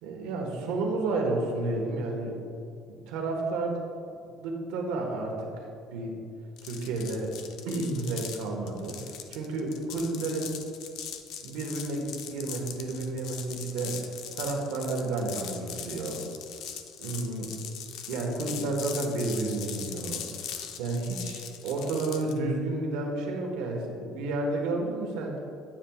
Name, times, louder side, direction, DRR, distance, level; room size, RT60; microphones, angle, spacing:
voice 1, 0.0-2.4 2.9-3.8 4.1-5.5 5.9-6.2 6.6-7.4 7.6-9.0 9.3-10.5 11.4-14.0 14.3-16.2 17.0-17.5 18.1-20.2 20.8-25.3, right 2 dB, 90° right, 1 dB, 1.2 m, -31 dB
sound 1, 6.6-22.4, left 8 dB, 60° left, 0.5 m, -40 dB
9.0 x 7.4 x 2.3 m, 2.4 s
cardioid pair, 175°, 0 cm